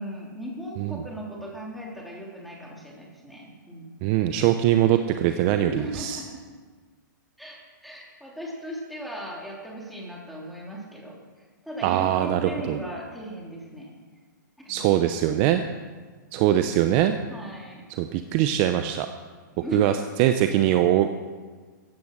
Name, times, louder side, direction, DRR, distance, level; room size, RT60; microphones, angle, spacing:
voice 1, 0.0-3.9 5.3-6.4 7.4-14.0 14.6-14.9 17.3-17.9 19.5-19.9, equal, ahead, -4 dB, 3.1 m, -38 dB
voice 2, 4.0-6.2 11.8-12.8 14.7-15.6 16.3-17.1 18.0-19.1 19.7-21.1, right 12 dB, 35° right, 8 dB, 0.7 m, -22 dB
15.0 x 10.5 x 6.3 m, 1.5 s
hypercardioid pair, 145°, 11 cm